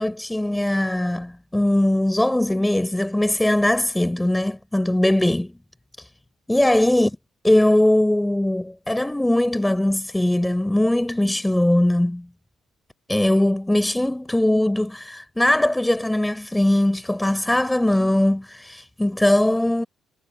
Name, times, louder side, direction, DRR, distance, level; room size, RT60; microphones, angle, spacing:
voice 1, 0.0-5.5 6.5-7.1 7.4-12.3 13.1-19.8, left 1 dB, 10° left, 5.6 m, -20 dB
hypercardioid pair, 55°, 0 cm